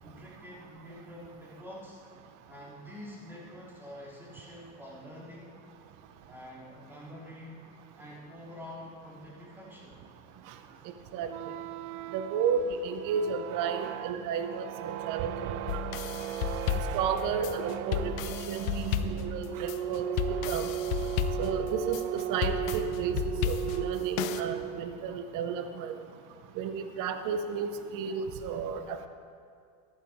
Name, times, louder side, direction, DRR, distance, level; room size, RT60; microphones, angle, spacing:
voice 1, 0.0-2.0 2.5-5.5 6.3-7.7 7.9-10.0, left 1 dB, 5° right, -6 dB, 3.3 m, -46 dB
sound 1, 11.2-25.0, right 11 dB, 85° right, 0.5 m, -36 dB
voice 2, 12.1-15.9 16.9-20.7 21.4-25.9 26.6-29.1, right 6 dB, 50° right, 8 dB, 0.9 m, -33 dB
sound 2, 15.7-24.4, left 9 dB, 70° left, 0.8 m, -33 dB
13.5 x 11.5 x 3.6 m, 2.2 s
supercardioid pair, 120°, 41 cm